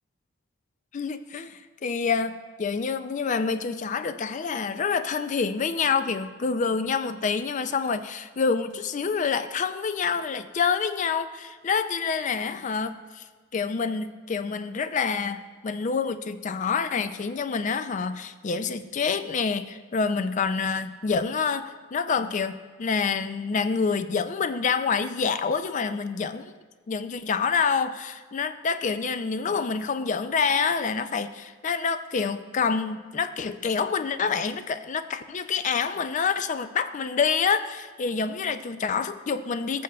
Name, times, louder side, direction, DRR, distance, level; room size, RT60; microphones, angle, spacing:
voice 1, 0.9-13.2 13.5-26.5 26.9-39.8, left 5 dB, 35° left, 11 dB, 0.3 m, -27 dB
14.0 x 7.7 x 2.3 m, 1.5 s
head